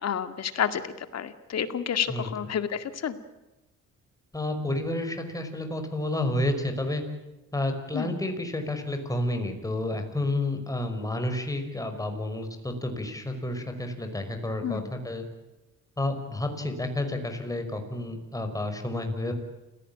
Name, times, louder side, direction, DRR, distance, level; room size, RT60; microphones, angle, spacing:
voice 1, 0.0-3.2 7.9-8.1 14.6-14.9, left 8 dB, 60° left, 10 dB, 2.1 m, -30 dB
voice 2, 4.3-7.0 7.5-15.3 16.0-19.3, left 1 dB, 10° left, 5 dB, 5.6 m, -30 dB
29.0 x 16.5 x 8.8 m, 1.0 s
cardioid pair, 90°, 30 cm